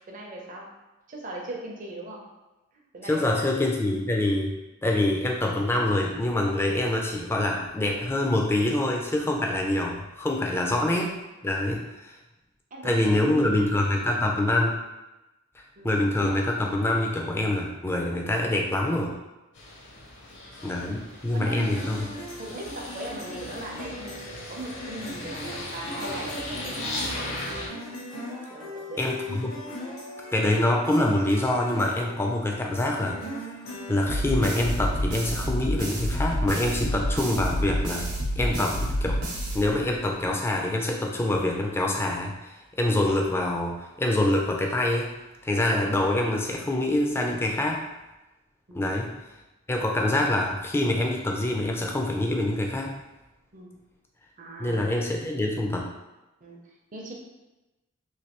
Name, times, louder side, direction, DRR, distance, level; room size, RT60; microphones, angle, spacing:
voice 1, 0.1-0.7 1.1-2.3 2.9-3.6 12.7-13.7 15.8-16.0 20.4-20.6 20.8-21.0 21.3-22.1 22.4-24.2 24.5-25.4 25.7-27.7 28.5-29.0 48.7-48.9 53.5-53.7 54.4-54.8 56.4-57.1, right 1 dB, 40° right, -1 dB, 0.5 m, -39 dB
voice 2, 3.0-4.5 4.8-11.2 11.4-12.1 12.8-14.8 15.8-19.1 20.6-22.0 29.0-29.5 30.3-33.2 33.9-38.1 38.4-39.2 39.5-45.1 45.4-47.8 48.7-49.1 49.7-53.0 54.6-55.9, left 1 dB, 10° left, 0 dB, 0.3 m, -25 dB
sound 1, 19.5-27.7, left 1 dB, 55° left, 0.6 m, -37 dB
sound 2, 21.5-34.7, equal, 85° left, 1.0 m, -40 dB
sound 3, 34.1-40.2, equal, 90° right, 0.8 m, -29 dB
3.1 x 2.6 x 2.9 m, 1.0 s
head